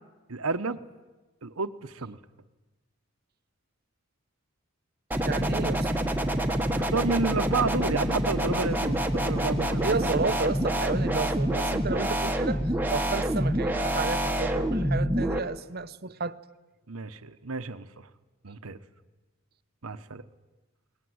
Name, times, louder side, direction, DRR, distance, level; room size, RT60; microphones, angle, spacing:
voice 1, 0.3-0.8 1.4-2.2 6.7-10.1 16.9-18.1 18.4-18.8 19.8-20.2, right 4 dB, 80° right, 1.1 m, -31 dB
Screaming wobble sounds, 5.1-15.4, right 1 dB, 10° right, 1.3 m, -27 dB
voice 2, 5.2-5.9 9.8-12.6 12.9-16.4, right 4 dB, 45° right, 0.8 m, -31 dB
22.0 x 19.5 x 9.6 m
head